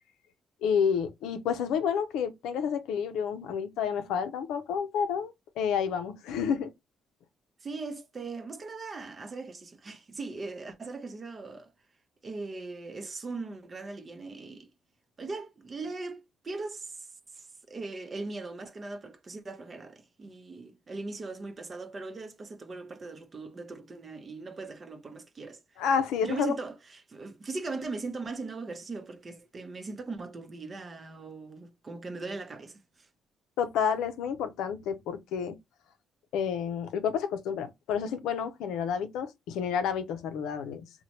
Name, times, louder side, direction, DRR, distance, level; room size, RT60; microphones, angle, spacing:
voice 1, 0.6-6.7 25.8-26.5 33.6-35.6 36.3-40.9, left 7 dB, 90° left, 0.4 m, -30 dB
voice 2, 7.6-11.7 12.2-14.7 15.2-17.1 17.3-25.8 26.2-33.1, right 3 dB, 35° right, 0.6 m, -39 dB
2.9 x 2.1 x 2.8 m
cardioid pair, 90°, 0 cm